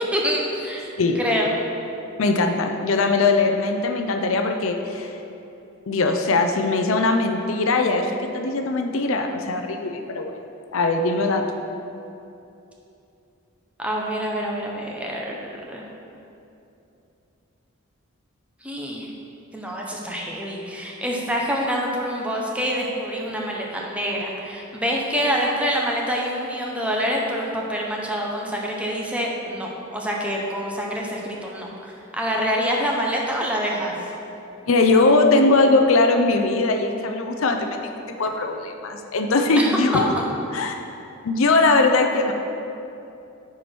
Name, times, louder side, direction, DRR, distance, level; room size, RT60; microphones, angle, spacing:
voice 1, 0.1-1.5 13.8-15.9 18.6-19.1 19.5-33.9 39.6-40.0, equal, 5° right, -2 dB, 0.9 m, -26 dB
voice 2, 2.2-5.1 5.9-10.4 10.7-11.4 34.7-37.8 38.2-40.1 40.5-40.8 41.2-42.3, left 3 dB, 70° left, 5 dB, 0.6 m, -20 dB
9.4 x 4.8 x 4.5 m, 2.8 s
head